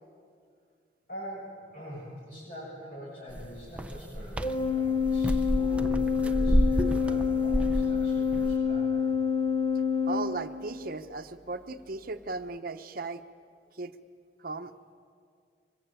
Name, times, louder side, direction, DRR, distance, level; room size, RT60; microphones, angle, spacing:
voice 1, 1.1-9.1, equal, 50° left, -7 dB, 7.4 m, -44 dB
sound 1, 3.3-8.5, equal, 5° right, 0.8 m, -30 dB
Organ, 4.4-11.0, left 6 dB, 30° left, 1.0 m, -27 dB
voice 2, 10.1-13.2 13.8-13.9 14.4-14.7, right 3 dB, 55° right, 9 dB, 0.9 m, -36 dB
24.0 x 21.5 x 9.0 m, 2.3 s
head